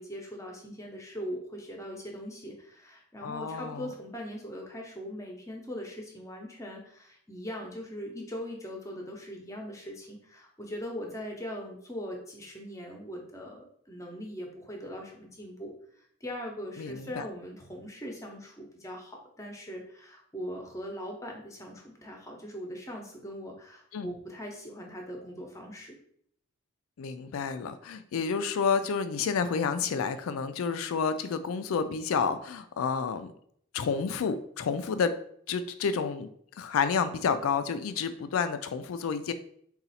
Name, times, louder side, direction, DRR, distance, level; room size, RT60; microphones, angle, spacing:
voice 1, 0.0-26.0, equal, 15° left, 1 dB, 0.7 m, -41 dB
voice 2, 3.2-3.9 16.8-17.3 23.9-24.1 27.0-33.3 33.7-35.1 35.5-36.3 36.6-39.3, left 5 dB, 90° left, 11 dB, 0.4 m, -30 dB
4.0 x 2.4 x 4.1 m, 0.65 s
head